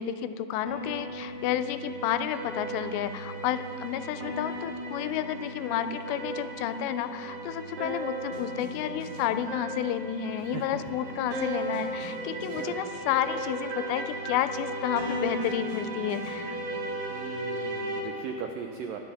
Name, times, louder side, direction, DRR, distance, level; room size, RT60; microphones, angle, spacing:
voice 1, 0.0-16.6, left 11 dB, 90° left, 11 dB, 2.8 m, -31 dB
sound 1, 0.7-18.0, right 2 dB, 65° right, 3.4 m, -36 dB
voice 2, 10.3-10.8 12.3-12.8 17.1-19.0, right 6 dB, 85° right, 3 dB, 1.9 m, -39 dB
24.5 x 9.8 x 3.5 m, 2.5 s
omnidirectional pair, 4.9 m